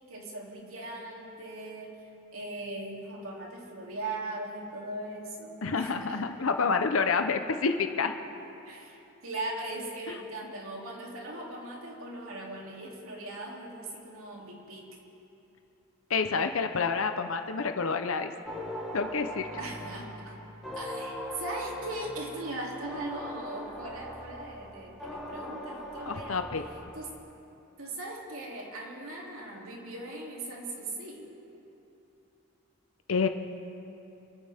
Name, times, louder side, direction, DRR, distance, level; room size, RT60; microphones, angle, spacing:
voice 1, 0.0-2.0 2.3-6.2 8.3-14.9 19.6-20.4 20.7-26.5 26.9-27.1 27.8-31.3, right 2 dB, 90° right, -2 dB, 2.9 m, -39 dB
voice 2, 5.6-8.1 10.1-10.2 16.1-18.3 18.9-19.5 26.0-26.6 33.1-33.3, left 5 dB, 80° left, 7 dB, 0.8 m, -28 dB
sound 1, 18.5-27.2, equal, ahead, 2.8 m, -41 dB
25.5 x 15.0 x 3.6 m, 2.9 s
head